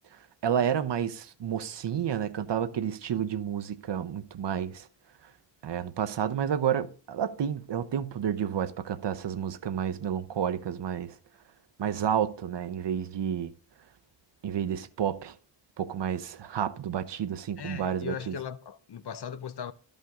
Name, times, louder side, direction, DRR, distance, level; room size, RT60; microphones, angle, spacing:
voice 1, 0.4-4.9 5.6-11.1 11.8-13.5 14.4-15.3 15.8-18.3, right 8 dB, 65° right, 0.8 m, -30 dB
voice 2, 17.6-19.7, left 8 dB, 60° left, 0.8 m, -38 dB
12.5 x 5.4 x 3.6 m
wide cardioid pair, 105°, 45 cm